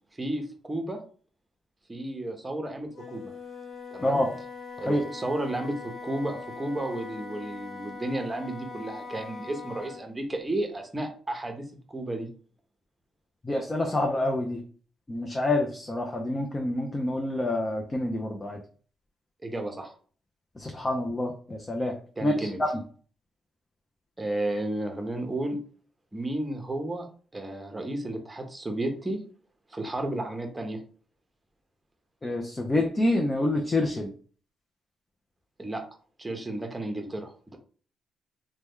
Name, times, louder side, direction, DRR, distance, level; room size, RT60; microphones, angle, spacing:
voice 1, 0.2-1.0 1.9-3.3 3.9-4.2 4.8-12.3 19.4-19.9 22.2-22.6 24.2-25.6 26.1-27.1 27.3-29.2 29.7-30.8 32.6-32.7 35.6-35.8 36.2-37.6, right 1 dB, 15° right, 4 dB, 0.8 m, -32 dB
Wind instrument woodwind instrument, 2.9-10.1, left 4 dB, 65° left, 1.1 m, -41 dB
voice 2, 13.4-14.6 15.1-18.6 20.6-21.9 22.2-22.7 32.2-34.1, left 1 dB, 20° left, 1 dB, 0.6 m, -27 dB
3.0 x 2.2 x 3.5 m, 0.42 s
cardioid pair, 95°, 0 cm